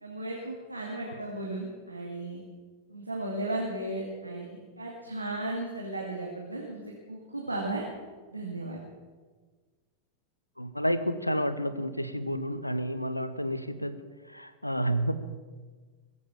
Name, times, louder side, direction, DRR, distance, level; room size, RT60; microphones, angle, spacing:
voice 1, 0.0-2.4 2.9-4.5 4.8-7.8 8.3-8.8, right 2 dB, 85° right, -2 dB, 2.2 m, -35 dB
voice 2, 10.6-13.9 14.3-15.1, equal, 90° left, 12 dB, 0.9 m, -30 dB
20.5 x 8.3 x 7.2 m, 1.4 s
figure-of-eight pair, 90°, 0 cm